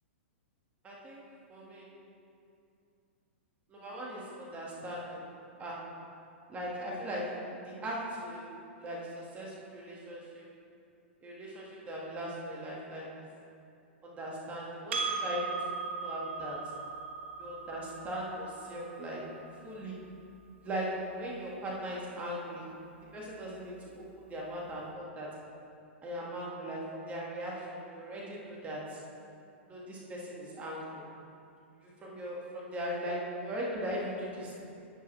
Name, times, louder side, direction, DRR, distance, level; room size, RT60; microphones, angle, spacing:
voice 1, 0.8-1.2 1.5-1.9 3.7-5.3 5.6-6.0 6.5-8.4 8.8-10.5 11.2-13.2 14.0-15.7 16.0-16.7 17.4-19.4 19.6-20.0 20.6-22.7 23.1-25.4 26.0-29.0 29.7-31.0 31.8-34.6, equal, 20° right, -4 dB, 1.9 m, -39 dB
Percussion, 14.9-19.7, right 4 dB, 75° right, 1.3 m, -38 dB
10.5 x 8.8 x 3.3 m, 2.5 s
hypercardioid pair, 130°, 7 cm